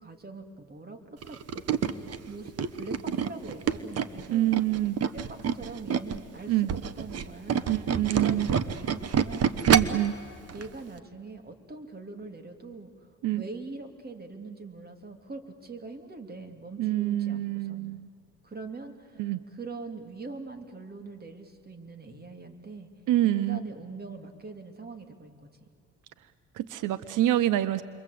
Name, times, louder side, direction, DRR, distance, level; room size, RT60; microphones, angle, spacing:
voice 1, 0.0-1.9 2.3-4.5 5.0-10.0 10.5-12.9 13.3-18.0 18.4-22.9 23.2-25.7, right 3 dB, 30° right, 6 dB, 2.9 m, -42 dB
Tools, 1.2-6.2 6.6-10.1 10.5-10.7 11.0-11.1, right 7 dB, 55° right, 1.2 m, -27 dB
voice 2, 4.3-5.0 6.5-6.7 7.7-8.5 9.7-10.1 13.2-13.4 16.8-18.1 19.2-19.4 23.1-23.6 26.6-27.8, right 14 dB, 85° right, 15 dB, 0.8 m, -26 dB
29.0 x 23.5 x 8.4 m, 2.4 s
cardioid pair, 90°, 30 cm